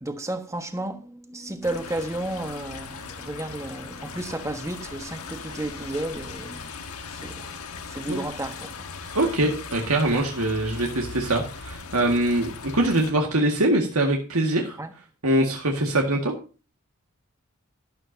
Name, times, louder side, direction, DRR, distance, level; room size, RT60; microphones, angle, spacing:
voice 1, 0.0-6.7 7.2-7.5 7.9-8.7 9.0-9.2 14.8-14.9, right 1 dB, 15° right, 1.4 m, -32 dB
sound 1, 1.6-13.1, left 4 dB, 75° left, 1.5 m, -39 dB
voice 2, 9.1-14.8 15.2-16.3, right 1 dB, 75° right, 1.9 m, -23 dB
12.5 x 12.0 x 2.7 m
head